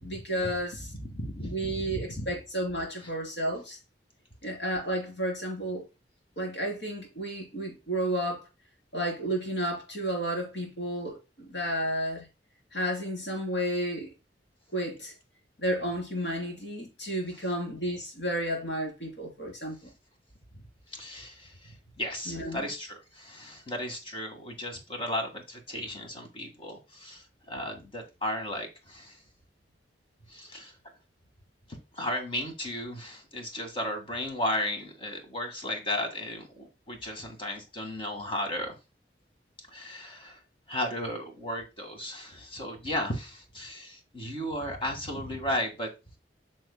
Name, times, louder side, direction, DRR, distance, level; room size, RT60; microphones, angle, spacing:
voice 1, 0.0-0.9 1.4-3.8 4.4-5.9 6.4-8.4 8.9-12.3 12.7-14.1 14.7-15.1 15.6-19.9 22.3-22.7, right 1 dB, 85° left, 3.7 m, -32 dB
voice 2, 1.0-2.3 20.9-21.5 22.0-27.2 27.5-29.1 30.3-30.7 31.9-38.7 39.7-40.4 40.7-45.9, left 1 dB, 30° left, 1.8 m, -34 dB
9.1 x 6.2 x 2.2 m
head